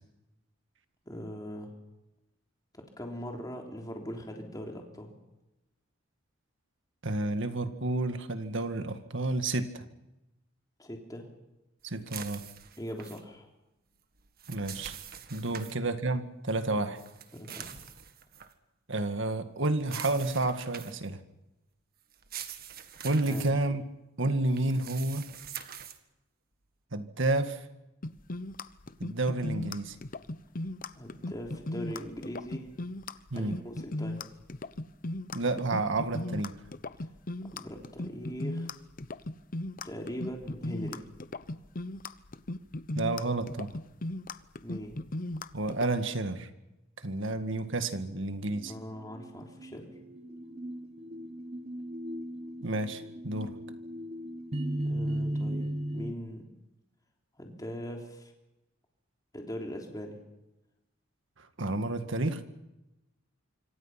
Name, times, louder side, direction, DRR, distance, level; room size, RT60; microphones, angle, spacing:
voice 1, 1.1-1.7 2.7-5.1 10.8-11.3 12.8-13.5 15.5-15.7 16.7-16.8 17.3-17.8 23.3-23.5 31.0-32.6 33.3-34.2 37.5-38.7 39.8-41.0 44.6-45.0 48.7-49.9 54.8-56.5 57.4-58.3 59.3-60.2, equal, 20° left, 1 dB, 3.6 m, -41 dB
voice 2, 7.0-9.8 11.8-12.4 14.5-14.9 15.3-17.0 18.9-21.2 23.0-23.8 24.2-25.3 26.9-27.6 29.0-30.0 33.3-33.6 35.3-36.5 42.9-43.7 45.5-46.5 47.0-48.7 52.6-53.5 61.4-62.4, right 2 dB, 65° right, 9 dB, 1.9 m, -30 dB
sound 1, 12.1-13.2 14.2-15.7 16.9-18.5 19.8-21.1 22.1-23.5 24.5-26.0, right 9 dB, 50° right, 1.8 m, -44 dB
sound 2, 28.0-45.9, left 2 dB, 45° left, 0.9 m, -37 dB
sound 3, 48.5-56.1, right 1 dB, 30° right, 1.4 m, -37 dB
26.0 x 25.0 x 5.9 m, 0.97 s
head